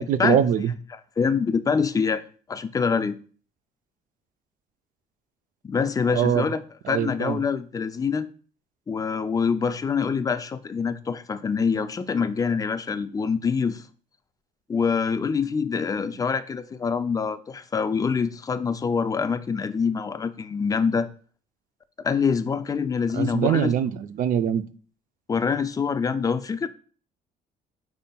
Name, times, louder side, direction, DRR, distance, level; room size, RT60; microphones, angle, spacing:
voice 1, 0.1-0.7 6.1-6.4 6.9-7.4 23.1-24.6, right 9 dB, 55° right, 0.4 m, -23 dB
voice 2, 0.9-2.2 2.5-3.2 5.6-6.6 6.9-8.3 8.9-13.8 14.7-21.1 22.0-23.7 25.3-26.7, left 5 dB, 20° left, 0.3 m, -25 dB
5.4 x 4.3 x 2.2 m
cardioid pair, 110°, 17 cm